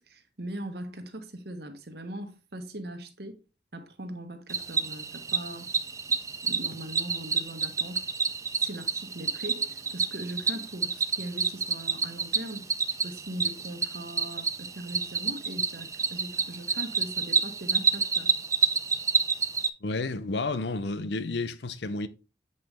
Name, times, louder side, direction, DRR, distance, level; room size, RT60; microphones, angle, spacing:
voice 1, 0.0-3.4 3.7-5.7 6.4-8.1 8.6-12.7 13.0-18.4, right 1 dB, 65° right, 1.2 m, -40 dB
Cricket, 4.5-19.7, right 5 dB, 15° right, 0.4 m, -29 dB
voice 2, 19.8-22.1, left 3 dB, 75° left, 0.7 m, -31 dB
7.8 x 5.5 x 3.4 m
head